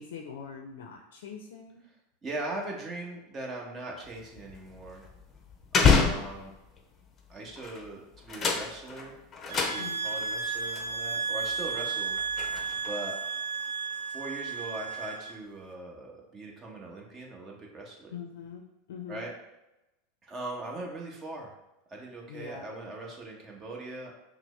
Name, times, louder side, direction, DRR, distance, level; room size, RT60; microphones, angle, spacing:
voice 1, 0.0-1.8 6.0-6.3 9.8-10.1 18.1-18.6 18.9-19.3 22.3-22.6, left 7 dB, 80° left, 3 dB, 0.4 m, -43 dB
voice 2, 2.2-5.0 5.7-6.5 7.3-9.2 9.4-12.2 12.8-13.2 14.1-18.2 19.1-19.3 20.2-21.5 21.9-24.1, right 2 dB, 25° right, -1 dB, 1.1 m, -40 dB
sound 1, 4.1-6.8 7.5-7.9 8.1-10.3 10.7-10.8 11.5-13.0, left 5 dB, 30° left, 0.7 m, -28 dB
sound 2, 9.5-15.3, right 5 dB, 75° right, 0.6 m, -33 dB
5.9 x 2.0 x 3.2 m, 0.95 s
hypercardioid pair, 105°, 0 cm